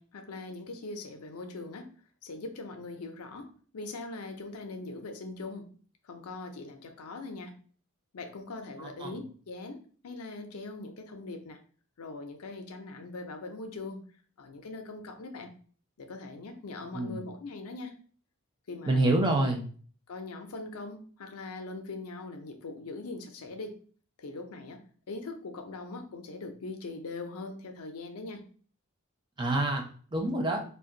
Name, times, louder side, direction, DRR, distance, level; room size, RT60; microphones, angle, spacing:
voice 1, 0.0-1.9 2.2-3.5 3.7-5.7 6.1-7.5 8.1-11.6 12.0-14.0 14.4-15.5 16.0-17.9 18.7-19.2 20.1-23.7 24.2-24.8 25.1-28.4, left 3 dB, 85° left, 5 dB, 0.5 m, -41 dB
voice 2, 8.8-9.2 16.9-17.2 18.9-19.6 29.4-29.8 30.1-30.6, right 1 dB, 20° right, 2 dB, 0.5 m, -27 dB
2.4 x 2.2 x 3.7 m, 0.43 s
head